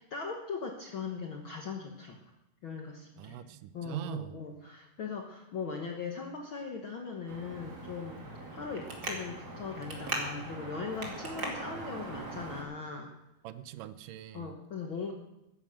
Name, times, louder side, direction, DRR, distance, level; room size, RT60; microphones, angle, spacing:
voice 1, 0.0-2.2 2.6-3.4 3.7-8.2 8.5-13.1 14.3-15.1, left 5 dB, 65° left, 2 dB, 1.2 m, -39 dB
voice 2, 3.2-4.3 13.4-14.5, right 13 dB, 80° right, 14 dB, 2.2 m, -42 dB
Traffic noise roadway noise, 7.3-12.6, right 2 dB, 30° right, 2.6 m, -40 dB
13.0 x 10.5 x 7.7 m, 0.92 s
omnidirectional pair, 3.9 m